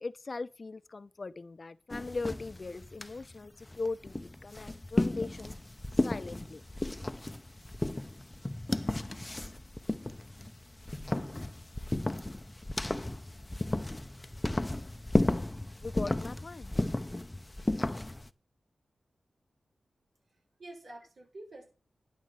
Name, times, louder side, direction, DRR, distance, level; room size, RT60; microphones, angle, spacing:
voice 1, 0.0-5.5 6.0-6.6 15.8-16.7, left 3 dB, 50° left, 0.8 m, -39 dB
sound 1, 1.9-18.3, left 1 dB, 20° left, 0.8 m, -34 dB
voice 2, 20.3-21.7, right 1 dB, 70° right, 7.4 m, -49 dB
11.0 x 6.2 x 8.1 m
cardioid pair, 65°, 0 cm